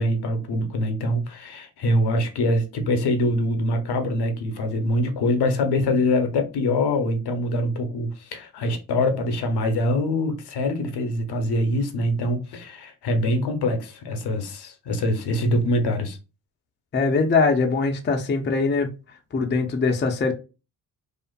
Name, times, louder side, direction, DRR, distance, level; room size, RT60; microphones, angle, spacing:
voice 1, 0.0-16.2, left 1 dB, 60° left, 0.7 m, -24 dB
voice 2, 16.9-18.9 19.3-20.3, left 4 dB, 25° left, 0.5 m, -22 dB
2.4 x 2.4 x 2.2 m
hypercardioid pair, 45°, 44 cm